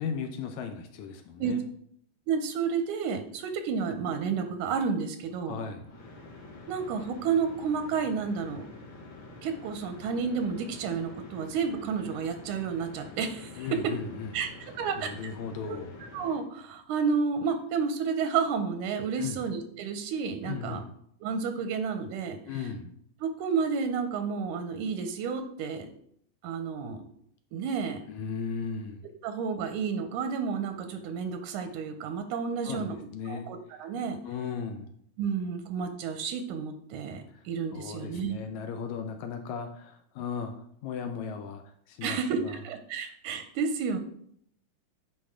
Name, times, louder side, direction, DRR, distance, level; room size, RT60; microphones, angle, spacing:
voice 1, 0.0-1.6 5.4-5.9 13.6-14.3 15.0-16.0 19.2-19.4 20.4-20.9 22.5-22.9 28.1-29.1 32.6-33.5 34.2-34.9 37.3-37.4 37.7-40.5 40.8-41.6 41.9-42.6, left 6 dB, 75° left, 6 dB, 1.8 m, -36 dB
voice 2, 2.3-5.6 6.7-8.7 9.4-13.7 14.3-14.5 14.7-15.1 15.6-20.8 21.2-22.4 23.2-25.9 26.4-27.0 27.5-28.0 29.2-33.0 33.3-34.2 35.2-38.4 42.0-44.0, right 6 dB, 85° right, 7 dB, 2.1 m, -31 dB
sound 1, 5.7-16.4, left 2 dB, 45° left, 1.9 m, -47 dB
9.7 x 4.4 x 3.7 m, 0.68 s
omnidirectional pair, 3.6 m